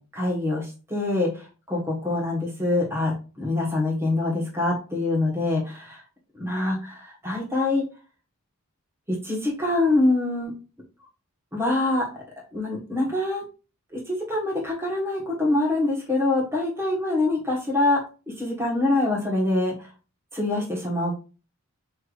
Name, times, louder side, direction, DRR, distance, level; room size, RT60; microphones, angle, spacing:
voice 1, 0.1-6.0 6.4-7.8 9.1-10.5 11.5-12.0 12.5-13.4 13.9-18.0 18.4-19.9 20.3-21.1, left 2 dB, 10° right, -3 dB, 1.3 m, -25 dB
5.7 x 3.2 x 2.5 m, 0.34 s
head